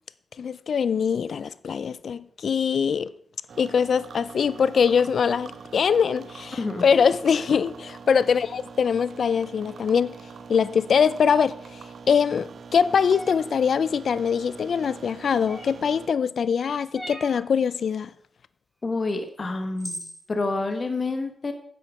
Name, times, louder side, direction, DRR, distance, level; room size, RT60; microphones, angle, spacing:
voice 1, 0.4-3.1 3.6-10.1 10.5-11.8 12.1-18.1, left 6 dB, 75° left, 0.4 m, -23 dB
sound 1, 3.5-16.1, right 5 dB, 75° right, 0.9 m, -43 dB
voice 2, 6.5-6.9 18.8-20.0 20.3-21.5, left 3 dB, 45° left, 1.5 m, -28 dB
sound 2, 13.1-13.4 15.5-15.9 16.9-17.4 19.1-19.2 19.8-20.2, equal, 5° left, 2.6 m, -37 dB
10.5 x 7.5 x 4.8 m
cardioid pair, 70°, 0 cm